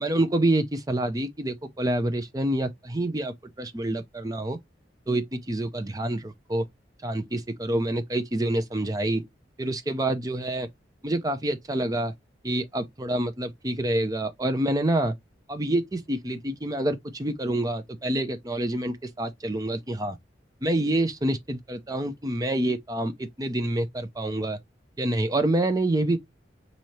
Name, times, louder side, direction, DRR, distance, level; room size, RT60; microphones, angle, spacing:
voice 1, 0.0-4.6 5.1-6.6 7.0-9.2 9.6-10.7 11.0-12.1 12.4-15.1 15.5-20.2 20.6-24.6 25.0-26.2, right 1 dB, 20° right, 0.5 m, -27 dB
4.3 x 2.7 x 3.1 m
head